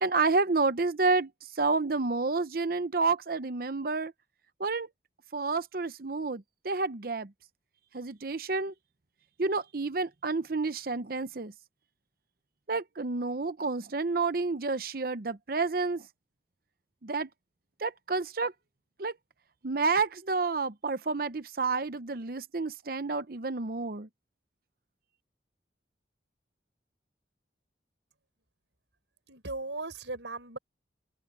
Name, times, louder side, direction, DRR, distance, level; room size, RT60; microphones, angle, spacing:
voice 1, 0.0-1.3 1.6-4.1 4.6-4.9 5.3-7.3 7.9-8.7 9.4-11.5 12.7-16.0 17.0-17.3 17.8-18.5 19.0-19.1 19.6-24.1, right 3 dB, 55° right, 0.7 m, -29 dB
voice 2, 29.3-30.6, right 2 dB, 85° right, 5.7 m, -37 dB
open air
head